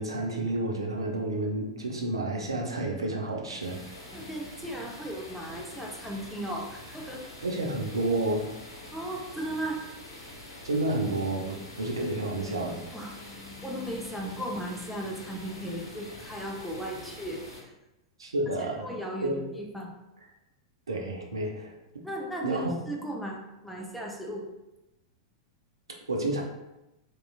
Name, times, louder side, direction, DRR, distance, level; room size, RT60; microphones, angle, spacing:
voice 1, 0.0-3.8 7.4-8.4 10.6-12.8 18.2-18.9 19.2-19.4 20.9-21.7 22.4-22.7 26.1-26.4, right 2 dB, 80° right, 1 dB, 0.5 m, -30 dB
sound 1, 3.6-17.6, left 1 dB, 75° left, 0.8 m, -46 dB
voice 2, 4.1-7.2 8.9-9.8 12.9-17.4 18.6-19.9 22.0-24.5, right 1 dB, ahead, -2 dB, 0.5 m, -36 dB
2.9 x 2.2 x 2.3 m, 0.94 s
figure-of-eight pair, 95°, 2 cm